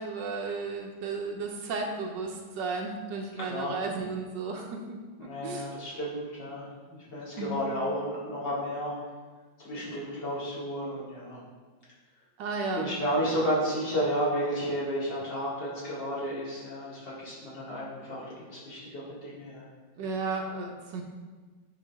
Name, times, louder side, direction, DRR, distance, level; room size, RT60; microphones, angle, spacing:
voice 1, 0.0-5.7 7.4-7.6 12.4-12.9 20.0-21.0, right 4 dB, 70° right, 2 dB, 1.3 m, -34 dB
voice 2, 3.4-3.8 5.2-9.0 9.6-11.4 12.8-18.2 18.5-19.7, equal, 60° left, -8 dB, 2.9 m, -32 dB
8.3 x 5.1 x 3.5 m, 1.4 s
omnidirectional pair, 2.2 m